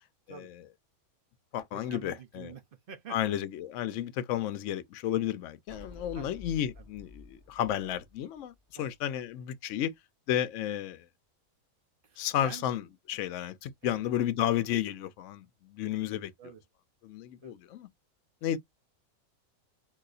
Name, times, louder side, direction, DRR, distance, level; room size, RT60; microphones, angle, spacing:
voice 1, 0.3-0.6 1.5-2.5 3.1-9.9 10.3-11.1 12.2-16.3 17.0-17.9 18.4-18.6, left 11 dB, 65° left, 0.8 m, -32 dB
voice 2, 1.7-3.4 6.1-6.3 6.8-6.9 8.7-8.9 12.0-12.6 13.8-14.0 16.4-16.6 17.4-17.5, right 7 dB, 55° right, 0.6 m, -47 dB
sound 1, 5.7-9.1, left 2 dB, 35° right, 1.4 m, -50 dB
3.9 x 2.7 x 2.4 m
omnidirectional pair, 1.6 m